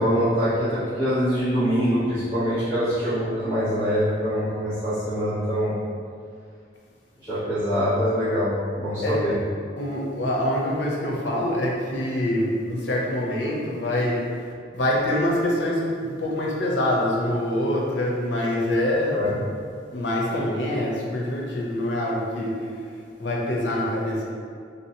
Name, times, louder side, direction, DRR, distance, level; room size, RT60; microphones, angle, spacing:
voice 1, 0.0-5.7 7.2-8.5 8.8-9.3 19.0-19.3, equal, 15° right, -19 dB, 1.2 m, -24 dB
voice 2, 9.8-14.2 14.7-19.4 19.9-22.5 23.2-24.2, left 1 dB, 80° left, -3 dB, 0.7 m, -25 dB
3.7 x 2.8 x 2.8 m, 2.2 s
head